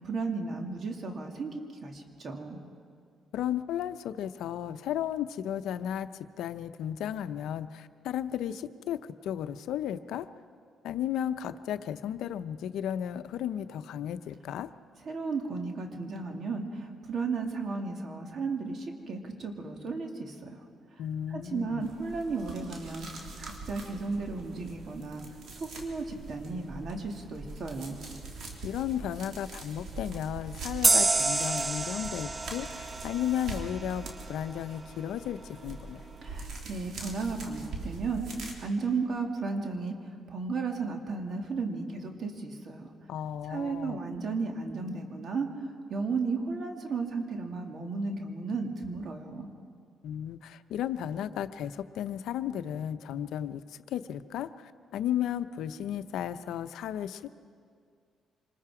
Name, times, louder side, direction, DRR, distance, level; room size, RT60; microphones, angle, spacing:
voice 1, 0.0-2.6 15.1-20.6 20.9-21.0 21.3-25.2 25.5-28.0 36.2-42.9 43.5-45.5 45.9-49.5, right 4 dB, 50° right, 3 dB, 2.5 m, -34 dB
voice 2, 3.3-6.1 6.4-10.3 10.8-14.7 21.0-21.9 28.6-36.0 43.1-44.0 50.0-57.3, left 10 dB, 80° left, 11 dB, 0.6 m, -34 dB
sound 1, 21.8-38.5, right 3 dB, 70° right, 3.3 m, -43 dB
sound 2, 30.8-34.2, right 3 dB, 25° right, 0.5 m, -28 dB
26.5 x 20.5 x 4.9 m, 2.2 s
cardioid pair, 90°, 0 cm